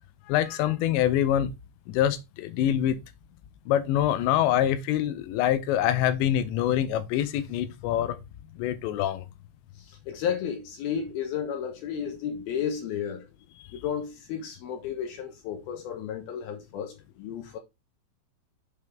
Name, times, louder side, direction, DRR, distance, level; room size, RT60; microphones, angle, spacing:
voice 1, 0.3-1.5 1.9-3.0 3.7-8.2 8.6-9.3, left 11 dB, 90° left, 2.9 m, -25 dB
voice 2, 9.9-13.3 13.7-17.6, left 8 dB, 75° left, 2.5 m, -33 dB
6.6 x 5.5 x 3.4 m
omnidirectional pair, 5.1 m